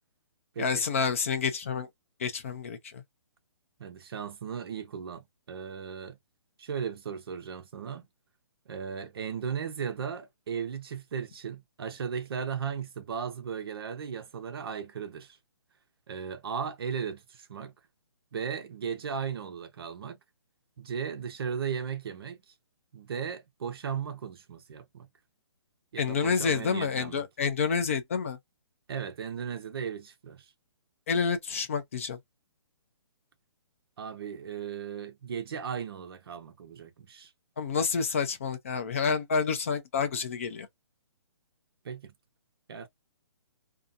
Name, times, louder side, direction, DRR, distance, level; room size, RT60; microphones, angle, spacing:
voice 1, 0.6-1.9 2.2-3.0 26.0-28.4 31.1-32.2 37.6-40.7, left 5 dB, 30° left, 0.4 m, -29 dB
voice 2, 3.8-6.2 6.6-8.1 8.7-15.4 16.1-17.7 18.3-20.2 20.8-22.4 22.9-25.1 25.9-27.2 28.9-30.5 34.0-37.3 41.8-42.1 42.7-42.9, right 7 dB, 55° right, 0.7 m, -36 dB
2.5 x 2.3 x 2.5 m
hypercardioid pair, 165°, 15 cm